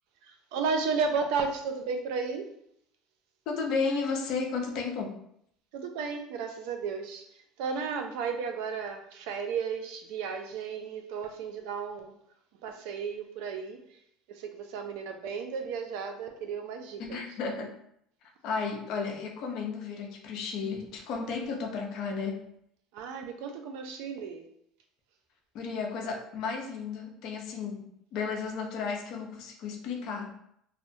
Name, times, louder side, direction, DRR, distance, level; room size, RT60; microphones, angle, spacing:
voice 1, 0.2-2.5 5.7-12.1 12.6-14.0 14.3-17.2 22.9-24.5, right 5 dB, 75° right, 6 dB, 0.4 m, -34 dB
voice 2, 3.5-5.2 17.0-17.7 18.4-22.4 25.5-30.4, left 5 dB, 65° left, 2 dB, 0.6 m, -33 dB
2.7 x 2.0 x 2.6 m, 0.72 s
supercardioid pair, 95°, 0 cm